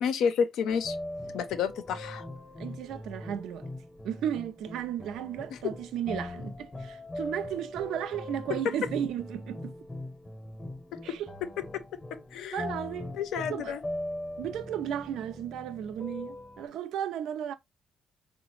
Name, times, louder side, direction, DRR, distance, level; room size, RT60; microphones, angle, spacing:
voice 1, 0.0-1.0 1.3-2.3 5.5-5.6 8.5-8.6 10.9-11.2 11.7-11.8 12.1-12.6 13.1-13.8, left 7 dB, 85° left, 0.5 m, -30 dB
sound 1, 0.7-16.7, left 1 dB, 25° left, 0.7 m, -41 dB
voice 2, 2.6-3.7 4.0-9.7 11.0-11.3 12.5-13.1 13.5-13.7 14.4-17.5, right 10 dB, 85° right, 0.4 m, -34 dB
3.9 x 2.0 x 3.0 m
cardioid pair, 90°, 0 cm